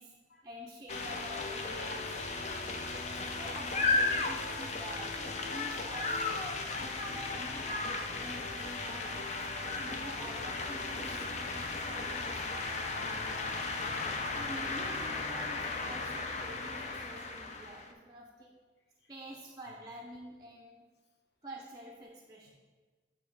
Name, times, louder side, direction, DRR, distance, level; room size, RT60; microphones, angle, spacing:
voice 1, 0.4-2.2 2.5-2.8 3.4-6.2 6.7-9.5 9.7-13.9 14.4-18.5 19.1-20.8 21.4-22.5, right 1 dB, 25° right, -1 dB, 0.5 m, -48 dB
sound 1, 0.9-17.9, left 3 dB, 40° left, 0.5 m, -35 dB
voice 2, 6.1-7.0 19.0-19.1, left 1 dB, 65° left, 2 dB, 0.8 m, -64 dB
8.3 x 2.9 x 4.6 m, 1.4 s
head